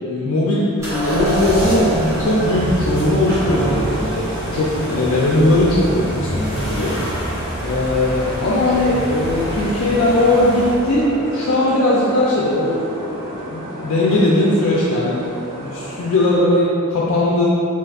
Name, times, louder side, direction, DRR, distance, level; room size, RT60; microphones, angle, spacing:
voice 1, 0.0-7.0 7.6-15.2 15.6-17.5, left 1 dB, 65° left, -5 dB, 0.4 m, -19 dB
sound 1, 0.8-10.9, equal, 15° right, 0.7 m, -27 dB
sound 2, 0.9-16.4, right 2 dB, 65° right, 0.6 m, -30 dB
2.5 x 2.4 x 3.5 m, 2.7 s
head